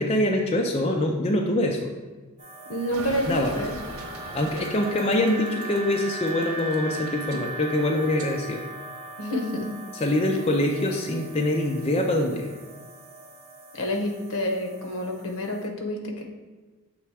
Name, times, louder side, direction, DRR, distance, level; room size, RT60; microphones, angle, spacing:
voice 1, 0.0-1.9 3.3-3.5 4.3-8.6 9.9-12.5, left 1 dB, 25° left, 1 dB, 0.4 m, -24 dB
sound 1, 2.4-15.7, right 2 dB, 30° right, 1.0 m, -39 dB
voice 2, 2.7-3.8 9.2-9.7 13.7-16.2, left 1 dB, 75° left, 3 dB, 0.9 m, -28 dB
sound 2, 2.9-8.3, right 2 dB, 75° right, 1.1 m, -41 dB
7.1 x 3.3 x 4.7 m, 1.3 s
head